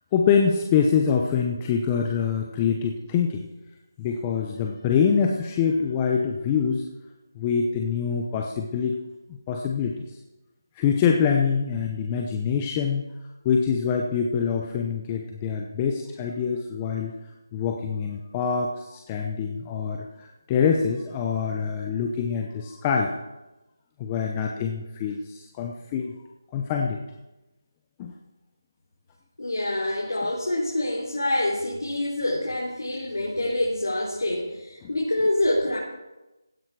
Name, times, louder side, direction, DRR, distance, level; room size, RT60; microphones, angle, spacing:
voice 1, 0.1-3.4 4.0-6.9 7.4-9.0 9.3-9.9 10.8-13.0 13.4-17.1 17.5-23.1 24.0-26.1 26.5-27.0 28.0-28.1 34.8-34.9, left 6 dB, 15° left, 1 dB, 0.7 m, -25 dB
voice 2, 29.4-35.8, left 1 dB, 80° left, -4 dB, 3.4 m, -26 dB
16.0 x 10.0 x 4.7 m, 1.0 s
figure-of-eight pair, 170°, 2 cm